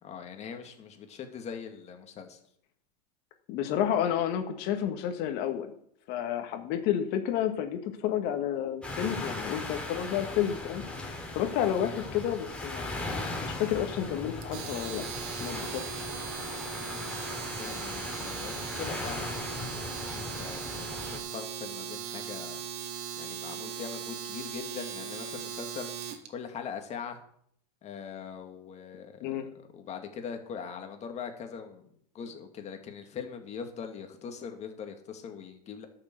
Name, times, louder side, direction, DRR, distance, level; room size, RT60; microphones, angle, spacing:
voice 1, 0.0-2.4 16.8-17.3 17.6-19.5 20.1-20.9 21.1-22.6 23.1-25.9 26.3-27.2 27.8-29.4 29.7-31.9 32.1-35.9, left 7 dB, 30° left, 5 dB, 2.3 m, -41 dB
voice 2, 3.5-5.7 6.1-10.8 11.3-16.0 29.2-29.4, left 10 dB, 50° left, 6 dB, 1.8 m, -31 dB
sound 1, 8.8-21.2, left 2 dB, 5° left, 3.8 m, -38 dB
Domestic sounds home sounds, 14.4-26.3, right 8 dB, 65° right, 2.3 m, -39 dB
11.5 x 6.7 x 8.0 m, 0.68 s
supercardioid pair, 120°, 21 cm